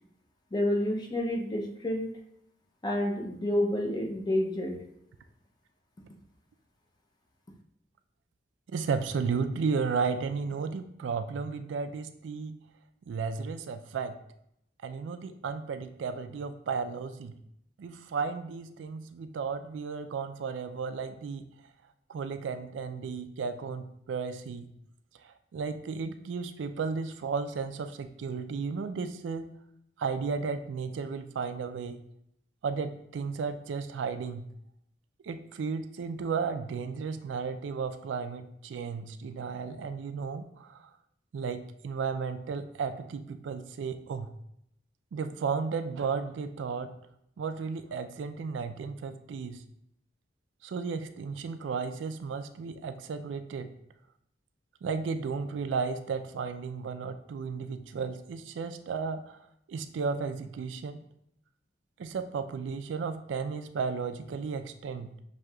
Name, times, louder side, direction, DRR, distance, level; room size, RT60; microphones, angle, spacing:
voice 1, 0.5-2.1 2.8-4.8, left 1 dB, 25° left, 2 dB, 0.5 m, -29 dB
voice 2, 8.7-12.6 13.1-14.2 14.8-17.4 17.8-21.5 22.1-24.7 25.2-29.5 30.0-32.0 32.6-34.4 35.2-40.9 41.3-44.3 45.1-46.9 47.4-49.6 50.6-53.7 54.8-59.4 59.7-61.0 62.0-65.1, right 5 dB, 85° right, 9 dB, 0.3 m, -34 dB
6.2 x 2.7 x 2.3 m, 0.75 s
head